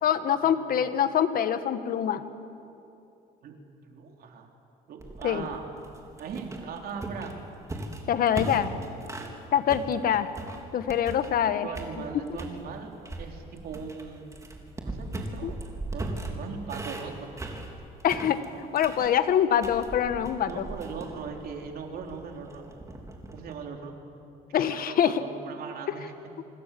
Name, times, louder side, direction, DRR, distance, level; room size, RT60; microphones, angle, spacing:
voice 1, 0.0-2.2 5.2-5.4 8.1-8.7 9.5-10.3 10.7-11.7 15.4-15.5 18.0-18.4 18.7-20.6 24.5-25.2, left 9 dB, 60° left, 11 dB, 1.4 m, -24 dB
voice 2, 3.8-4.5 4.9-5.6 6.2-7.3 8.5-8.7 11.6-12.9 13.2-14.2 14.8-17.3 20.4-22.7 23.3-23.9 24.7-26.1, right 5 dB, 65° right, 2 dB, 3.9 m, -39 dB
sound 1, 5.0-9.4 9.7-11.4 11.7-12.6 13.0-23.5, right 2 dB, 20° right, 3.4 m, -39 dB
26.0 x 26.0 x 7.7 m, 2.7 s
cardioid pair, 110°, 17 cm